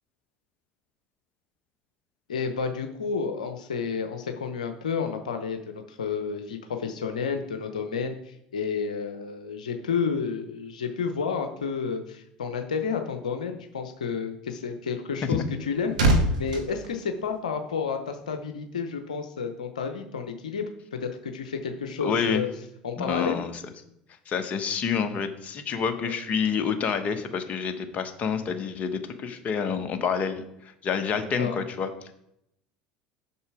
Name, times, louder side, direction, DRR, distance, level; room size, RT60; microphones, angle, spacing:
voice 1, 2.3-22.5 22.8-23.4 26.0-26.1 31.4-31.6, left 6 dB, 85° left, 6 dB, 0.8 m, -31 dB
sound 1, 15.2-17.9 18.2-18.5, right 1 dB, 85° right, 1.3 m, -26 dB
voice 2, 22.0-22.4 23.0-23.5 24.3-32.1, left 6 dB, 40° left, 7 dB, 1.1 m, -28 dB
6.9 x 6.2 x 4.8 m, 0.77 s
hypercardioid pair, 75°, 4 cm